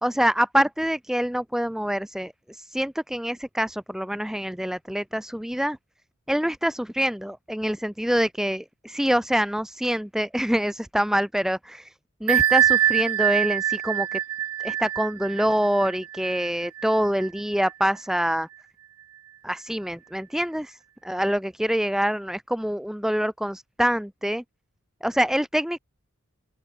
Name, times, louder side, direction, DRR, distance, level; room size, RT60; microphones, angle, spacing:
voice 1, 0.0-5.8 6.3-11.9 12.2-14.2 14.6-18.5 19.4-24.4 25.0-25.8, equal, ahead, 0.5 m, -25 dB
Bell, 12.3-17.7, right 10 dB, 80° right, 0.6 m, -24 dB
open air
head